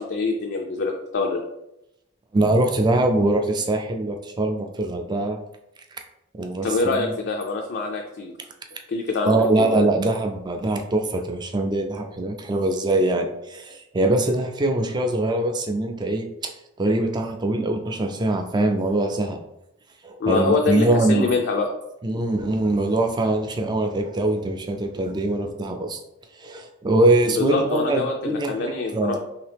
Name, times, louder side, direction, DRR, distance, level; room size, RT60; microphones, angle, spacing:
voice 1, 0.0-1.4 6.6-8.3 8.9-9.7 20.2-21.7 27.4-29.2, left 3 dB, 55° left, 1 dB, 0.4 m, -25 dB
voice 2, 2.3-5.4 6.3-7.1 9.2-16.5 16.8-19.4 20.0-21.3 22.0-26.0 26.3-29.2, right 2 dB, 20° right, 4 dB, 0.3 m, -23 dB
3.0 x 2.8 x 3.3 m, 0.87 s
head